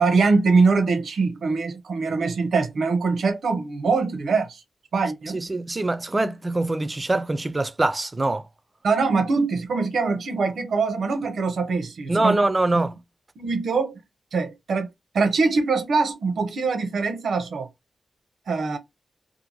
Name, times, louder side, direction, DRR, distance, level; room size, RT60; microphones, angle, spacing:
voice 1, 0.0-4.6 4.9-5.4 8.8-12.4 13.4-14.0 14.3-14.9 15.1-17.7 18.5-18.8, right 4 dB, 80° right, 0.7 m, -23 dB
voice 2, 5.3-8.4 12.1-13.0, right 2 dB, 25° right, 0.3 m, -23 dB
2.7 x 2.5 x 2.8 m
wide cardioid pair, 140°, 0 cm